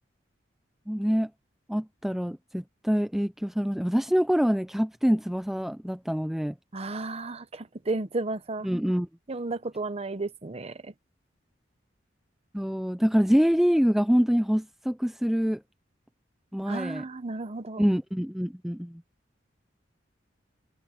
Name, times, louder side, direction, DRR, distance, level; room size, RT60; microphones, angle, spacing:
voice 1, 0.9-1.3 1.7-6.5 8.6-9.1 12.5-15.6 16.5-17.0 17.8-19.0, equal, ahead, 0.5 m, -25 dB
voice 2, 6.7-8.7 9.3-10.9 16.7-17.8, right 2 dB, 35° right, 0.8 m, -33 dB
head